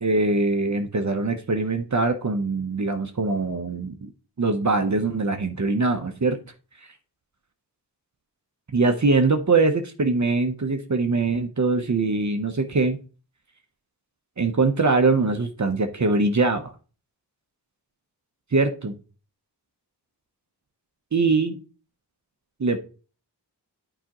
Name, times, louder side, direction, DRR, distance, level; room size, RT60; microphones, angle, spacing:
voice 1, 0.0-4.1 4.4-6.4 8.7-13.0 14.4-16.7 18.5-18.9 21.1-21.6 22.6-22.8, right 3 dB, 40° right, 6 dB, 0.8 m, -22 dB
9.1 x 4.9 x 3.0 m, 0.37 s
cardioid pair, 45°, 42 cm